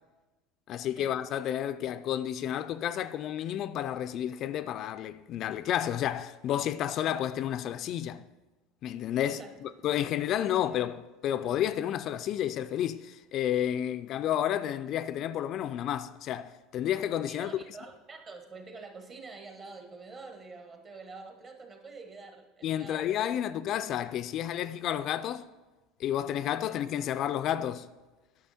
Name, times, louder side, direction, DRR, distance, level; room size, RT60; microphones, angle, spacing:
voice 1, 0.7-8.2 8.8-11.0 11.2-17.5 22.6-25.5 26.0-27.9, left 11 dB, 50° left, 0.3 m, -31 dB
voice 2, 10.3-10.8 17.3-23.4 26.6-26.8, right 3 dB, 35° right, 1.4 m, -47 dB
10.0 x 6.4 x 4.2 m
supercardioid pair, 100°, 0 cm